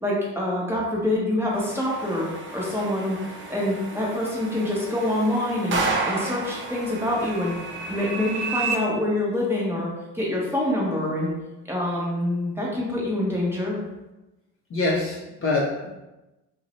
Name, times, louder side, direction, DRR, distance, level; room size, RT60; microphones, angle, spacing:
voice 1, 0.0-3.2 3.5-7.5 7.9-11.3 11.7-13.8, left 1 dB, 5° right, -5 dB, 0.8 m, -26 dB
sound 1, 1.5-8.7, right 3 dB, 30° right, 0.5 m, -33 dB
sound 2, 4.6-8.8, right 5 dB, 80° right, 0.7 m, -34 dB
voice 2, 14.7-15.9, left 2 dB, 35° left, -4 dB, 0.5 m, -25 dB
2.5 x 2.0 x 3.0 m, 1.0 s
supercardioid pair, 80°, 40 cm